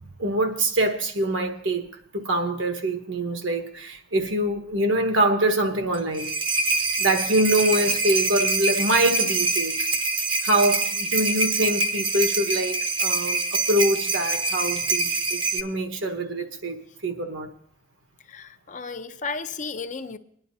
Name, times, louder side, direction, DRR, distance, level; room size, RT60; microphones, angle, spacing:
voice 1, 0.2-1.9 2.1-6.3 7.0-9.9 10.4-16.8 17.0-17.5, right 1 dB, 75° right, 1.3 m, -24 dB
sound 1, 5.9-15.6, right 3 dB, 25° right, 0.7 m, -25 dB
voice 2, 7.8-8.1 18.3-20.2, left 4 dB, 40° left, 0.5 m, -34 dB
21.5 x 10.5 x 2.7 m
head